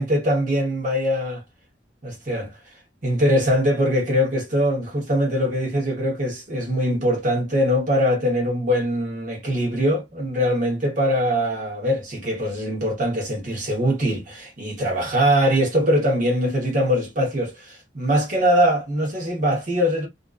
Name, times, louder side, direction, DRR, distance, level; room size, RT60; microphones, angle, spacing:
voice 1, 0.0-1.4 2.0-2.5 3.0-20.1, equal, 45° right, 0.9 m, -22 dB
2.5 x 2.2 x 2.3 m
head